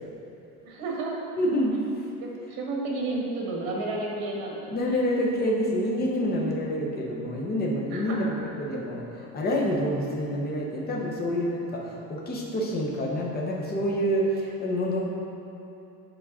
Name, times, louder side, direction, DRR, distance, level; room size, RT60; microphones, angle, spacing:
voice 1, 0.7-1.1 2.2-4.6 5.0-5.1 7.9-8.3, right 2 dB, 70° right, -2 dB, 1.4 m, -31 dB
voice 2, 1.4-1.8 4.7-15.0, equal, 25° left, -2 dB, 0.8 m, -27 dB
7.3 x 4.7 x 3.7 m, 2.9 s
cardioid pair, 175°, 38 cm